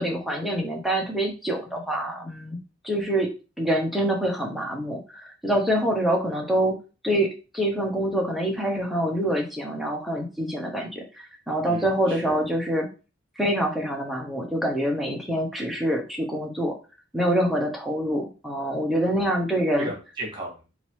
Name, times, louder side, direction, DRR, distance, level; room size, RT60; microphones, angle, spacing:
voice 1, 0.0-2.6 2.8-3.3 3.6-6.7 7.0-12.9 13.4-16.7 17.1-19.9, right 1 dB, ahead, -1 dB, 1.1 m, -26 dB
voice 2, 11.7-12.4 19.8-20.7, right 1 dB, 25° right, 1 dB, 1.7 m, -36 dB
3.9 x 2.8 x 4.6 m, 0.32 s
head